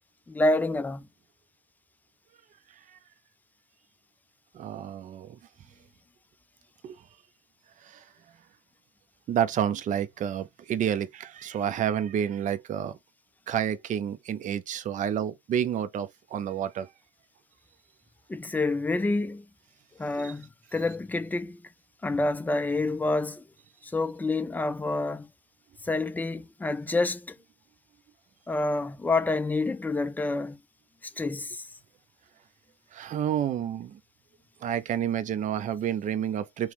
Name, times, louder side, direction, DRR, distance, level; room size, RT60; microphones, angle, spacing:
voice 1, 0.3-1.1 18.3-19.4 20.0-21.6 22.0-23.4 23.8-25.3 25.8-27.4 28.5-30.6 31.0-31.7, left 2 dB, 10° left, 0.5 m, -28 dB
voice 2, 4.5-5.4 6.8-7.0 7.8-8.0 9.3-12.9 13.5-16.9 20.2-20.3 32.9-34.0 34.6-36.7, right 9 dB, 50° right, 0.6 m, -29 dB
3.0 x 3.0 x 3.4 m
cardioid pair, 110°, 17 cm